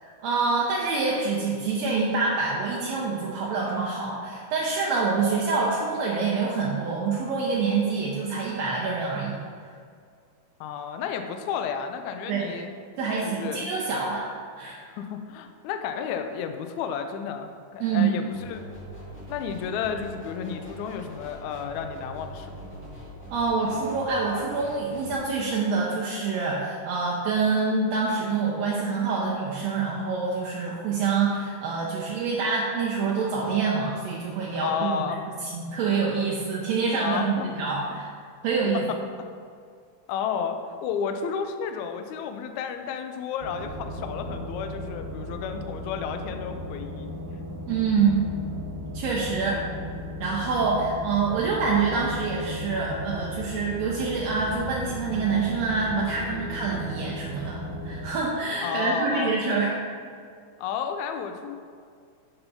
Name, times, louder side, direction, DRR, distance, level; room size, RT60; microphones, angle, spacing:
voice 1, 0.2-9.4 12.3-12.5 13.0-14.8 17.8-18.1 23.3-35.0 35.4-38.1 38.4-38.8 47.7-48.2 48.9-49.6 50.2-59.8, right 4 dB, 70° right, -4 dB, 1.6 m, -26 dB
voice 2, 10.6-12.7 13.2-13.7 15.0-18.7 19.3-22.7 34.6-35.2 37.0-37.5 40.1-47.1 49.5-49.6 58.6-59.4 60.6-61.6, left 7 dB, 85° left, 7 dB, 1.7 m, -32 dB
sound 1, 18.3-25.2, right 1 dB, 15° left, 0.4 m, -42 dB
sound 2, 43.4-58.1, left 1 dB, 90° right, 2.6 m, -36 dB
6.9 x 5.6 x 5.5 m, 2.2 s
omnidirectional pair, 4.0 m